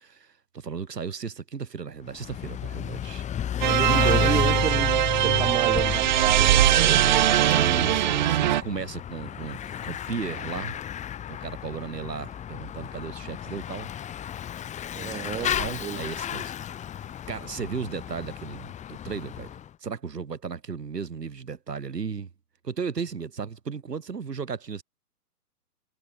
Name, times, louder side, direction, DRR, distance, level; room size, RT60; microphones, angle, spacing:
voice 1, 0.0-3.3 3.8-4.6 7.4-10.8 11.3-13.9 15.2-16.5 17.3-19.5 19.8-22.3 22.6-24.8, right 6 dB, 85° right, 5.3 m, -35 dB
Bicycle / Mechanisms, 2.1-19.7, left 10 dB, 15° left, 3.4 m, -32 dB
voice 2, 3.6-4.9 5.2-7.2 14.9-16.0, right 10 dB, 10° right, 1.3 m, -31 dB
sound 1, 3.6-8.6, right 12 dB, 30° right, 0.6 m, -21 dB
hypercardioid pair, 140°, 47 cm